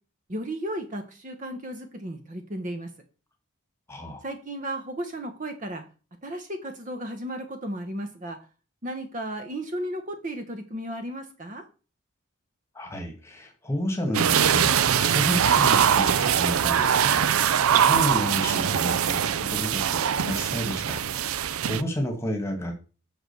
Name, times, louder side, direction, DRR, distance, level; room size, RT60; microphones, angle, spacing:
voice 1, 0.3-2.9 4.2-5.8 6.2-8.4 8.8-11.6, right 1 dB, 35° right, 6 dB, 0.9 m, -34 dB
voice 2, 3.9-4.2 12.7-21.0 21.3-22.8, equal, 10° left, 4 dB, 1.5 m, -31 dB
sound 1, 14.1-21.8, right 8 dB, 85° right, 0.5 m, -22 dB
6.0 x 4.9 x 6.7 m, 0.35 s
head